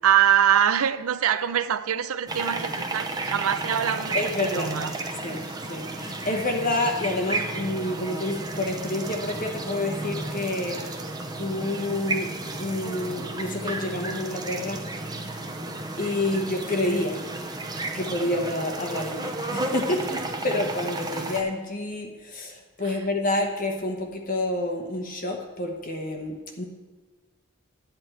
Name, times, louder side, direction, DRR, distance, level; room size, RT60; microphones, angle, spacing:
voice 1, 0.0-4.9 22.8-23.0, right 9 dB, 80° right, 0.5 m, -24 dB
sound 1, 2.3-21.4, right 2 dB, 20° right, 0.6 m, -33 dB
voice 2, 4.1-4.7 5.2-5.4 5.7-10.8 11.4-12.3 12.6-14.8 16.0-17.2 17.9-26.6, left 1 dB, 40° left, 1.0 m, -28 dB
10.5 x 4.4 x 7.9 m
head